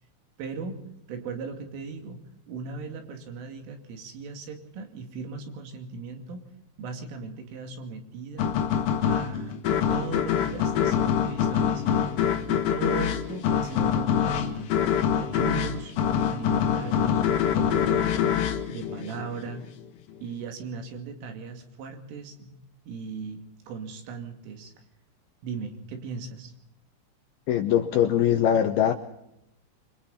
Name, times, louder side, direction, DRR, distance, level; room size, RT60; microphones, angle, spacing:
voice 1, 0.4-0.8 1.1-2.2 2.5-6.5 6.8-8.6 9.1-9.6 9.9-12.1 12.5-14.7 15.1-15.9 16.3-17.2 17.6-18.4 18.7-19.6 20.2-22.6 22.9-24.7 25.4-26.5, right 5 dB, 75° right, 5 dB, 5.1 m, -37 dB
sound 1, 8.4-19.7, left 8 dB, 65° left, 2.3 m, -25 dB
voice 2, 27.5-28.9, left 10 dB, 85° left, 6 dB, 2.2 m, -22 dB
28.5 x 23.5 x 4.2 m, 0.83 s
omnidirectional pair, 5.9 m